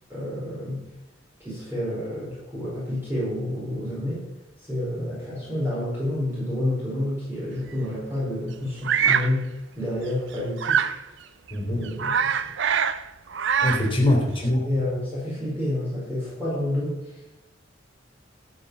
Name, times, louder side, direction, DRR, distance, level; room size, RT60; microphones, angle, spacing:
voice 1, 0.1-0.8 1.4-4.2 4.6-10.9 11.7-12.1 12.4-12.5 13.9-14.1 14.6-17.2, left 1 dB, 10° right, -9 dB, 4.8 m, -29 dB
Bird vocalization bird call bird song, 8.9-9.3 10.6-11.0 11.5-11.6 11.8-13.0 13.3-13.9, right 7 dB, 65° right, 0.6 m, -23 dB
voice 2, 11.5-11.8 13.6-14.7, left 1 dB, 30° left, 1 dB, 3.4 m, -23 dB
13.0 x 6.8 x 7.0 m, 1.0 s
head